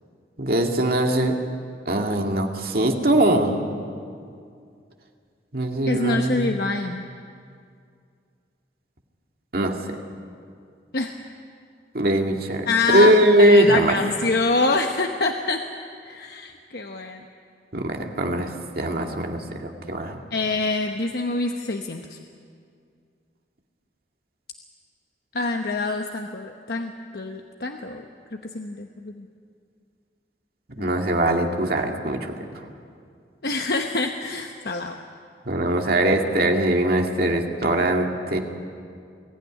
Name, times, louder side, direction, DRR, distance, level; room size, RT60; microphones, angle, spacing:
voice 1, 0.4-1.3 1.9-3.6 5.5-6.6 9.5-9.7 11.9-12.6 12.9-13.9 17.7-18.5 18.8-20.2 30.8-32.3 35.5-38.4, right 1 dB, 55° right, 2 dB, 2.1 m, -21 dB
voice 2, 5.8-7.0 10.9-11.1 12.7-15.6 16.0-17.2 20.3-22.2 25.3-28.0 28.3-29.3 30.8-30.9 33.4-35.0, left 3 dB, 60° left, 4 dB, 1.0 m, -25 dB
22.0 x 15.0 x 10.0 m, 2.3 s
head